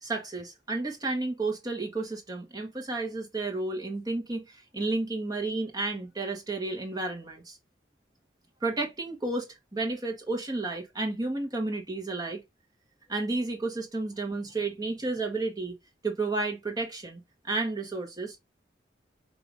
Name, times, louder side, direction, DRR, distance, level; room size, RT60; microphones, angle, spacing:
voice 1, 0.0-7.6 8.6-12.4 13.1-15.8 16.0-18.4, right 3 dB, 20° right, 1.3 m, -32 dB
5.2 x 2.9 x 3.4 m
head